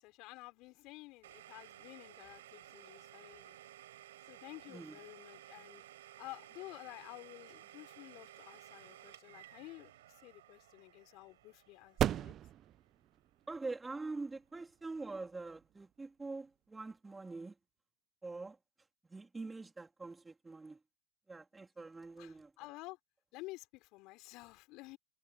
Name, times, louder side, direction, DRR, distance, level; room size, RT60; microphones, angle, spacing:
voice 1, 0.0-3.6 4.2-5.9 6.2-12.4 22.2-23.0 23.3-25.0, left 21 dB, 45° left, 5.3 m, -52 dB
Domestic sounds home sounds, 1.2-12.9, right 13 dB, 70° right, 4.8 m, -56 dB
voice 2, 4.7-5.0 13.5-17.6 18.2-18.6 19.0-20.8 21.3-22.5, right 3 dB, 10° right, 3.5 m, -44 dB
sound 1, 9.4-16.7, right 11 dB, 35° right, 1.0 m, -42 dB
hypercardioid pair, 110°, 0 cm